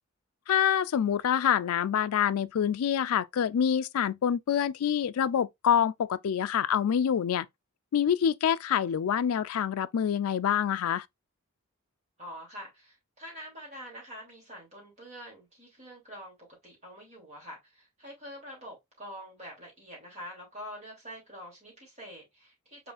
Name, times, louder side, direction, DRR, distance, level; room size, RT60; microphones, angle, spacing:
voice 1, 0.5-7.5 7.9-11.0, left 8 dB, 75° left, 0.3 m, -26 dB
voice 2, 12.2-16.3 16.6-22.9, equal, 30° right, 3.0 m, -45 dB
4.8 x 4.0 x 2.5 m
head